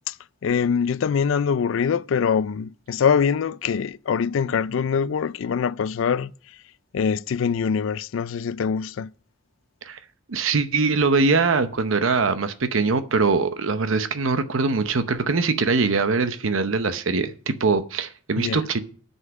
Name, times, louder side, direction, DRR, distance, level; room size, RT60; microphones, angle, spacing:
voice 1, 0.4-6.3 6.9-9.1 18.4-18.6, left 6 dB, 70° left, 0.4 m, -23 dB
voice 2, 10.3-18.8, right 4 dB, 75° right, 0.8 m, -22 dB
9.7 x 5.5 x 7.9 m
head